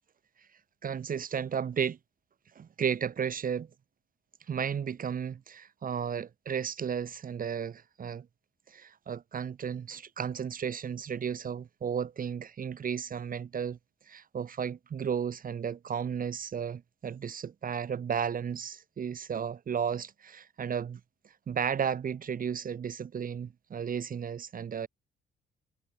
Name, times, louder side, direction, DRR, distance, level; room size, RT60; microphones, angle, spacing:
voice 1, 0.8-2.0 2.5-3.7 4.5-8.3 8.7-13.8 14.1-21.0 21.5-24.9, right 7 dB, 45° right, 1.1 m, -34 dB
cardioid pair, 90°, 20 cm